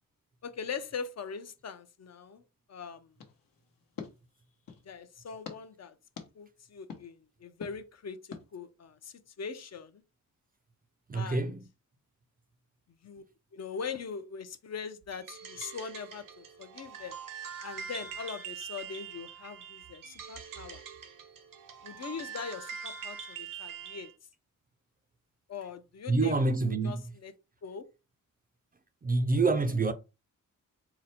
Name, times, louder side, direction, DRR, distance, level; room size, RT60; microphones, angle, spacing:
voice 1, 0.4-2.4 2.7-3.1 4.9-5.9 6.4-8.2 8.5-10.0 11.1-11.6 13.0-13.2 13.5-17.1 17.6-20.8 21.8-24.1 25.5-27.3 27.6-27.8, left 6 dB, 50° left, 0.5 m, -41 dB
sound 1, 3.2-4.9 5.4-5.6 6.2-6.3 6.9-7.0 7.6-7.7 8.3-8.4, left 6 dB, 80° left, 0.9 m, -45 dB
voice 2, 11.1-11.6 26.1-27.0 29.0-29.9, right 3 dB, 25° right, 0.4 m, -27 dB
sound 2, 15.1-24.1, right 7 dB, 75° right, 0.8 m, -44 dB
3.9 x 2.1 x 4.1 m
wide cardioid pair, 95°, 33 cm